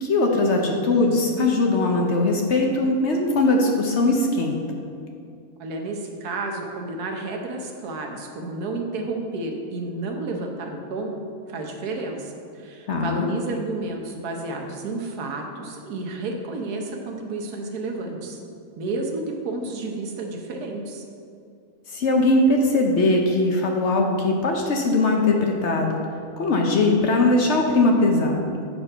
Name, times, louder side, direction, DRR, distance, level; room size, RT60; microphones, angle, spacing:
voice 1, 0.0-4.6 12.9-13.3 21.9-26.0 26.4-28.6, left 2 dB, 55° left, 1 dB, 0.9 m, -20 dB
voice 2, 5.6-11.1 11.5-18.4 18.8-21.0, right 2 dB, 85° right, 2 dB, 1.4 m, -31 dB
7.8 x 4.4 x 5.5 m, 2.4 s
omnidirectional pair, 1.6 m